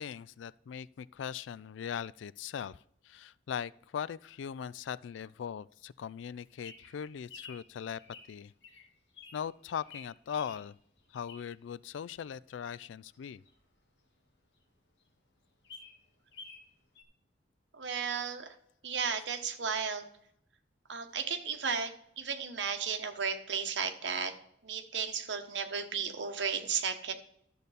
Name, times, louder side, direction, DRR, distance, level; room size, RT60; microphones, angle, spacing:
voice 1, 0.0-2.8 3.0-8.0 8.3-8.5 9.3-10.8 11.1-13.4, left 8 dB, 85° left, 20 dB, 0.3 m, -40 dB
Bird vocalization bird call bird song, 6.5-11.7 12.1-14.3 14.7-14.8 15.0-15.1 15.4-16.7 16.9-17.0, left 4 dB, 70° left, 1.7 m, -52 dB
voice 2, 17.7-18.5 18.8-20.1 20.9-24.3 24.6-27.1, right 6 dB, 75° right, 5 dB, 1.1 m, -34 dB
12.0 x 6.7 x 4.1 m, 0.67 s
head